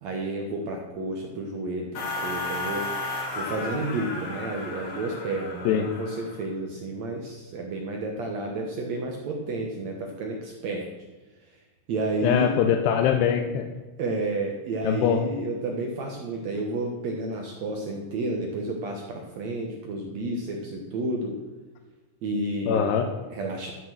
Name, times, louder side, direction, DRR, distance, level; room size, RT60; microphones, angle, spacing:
voice 1, 0.0-2.9 3.3-10.9 11.9-12.5 14.0-21.3 22.2-23.7, right 2 dB, 75° right, 1 dB, 1.6 m, -31 dB
sound 1, 1.9-6.5, left 3 dB, 45° left, 3.1 m, -34 dB
voice 2, 12.2-13.7 14.8-15.2 22.7-23.1, left 8 dB, 85° left, 5 dB, 2.8 m, -22 dB
13.0 x 6.2 x 6.2 m, 1.2 s
omnidirectional pair, 4.8 m